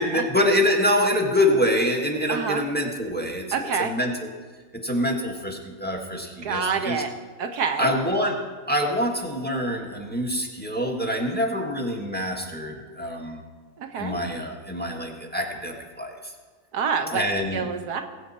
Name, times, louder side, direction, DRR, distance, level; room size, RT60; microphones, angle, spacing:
voice 1, 0.0-4.1 4.8-7.0 7.8-8.4 8.7-13.4 13.9-16.3 17.1-17.6, left 1 dB, 5° left, 0 dB, 1.5 m, -25 dB
voice 2, 2.3-2.6 3.5-3.9 6.4-7.1 7.4-7.9 13.8-14.2 16.7-17.2 17.5-18.0, right 6 dB, 90° right, 6 dB, 1.6 m, -27 dB
21.0 x 8.5 x 4.3 m, 1.4 s
omnidirectional pair, 1.6 m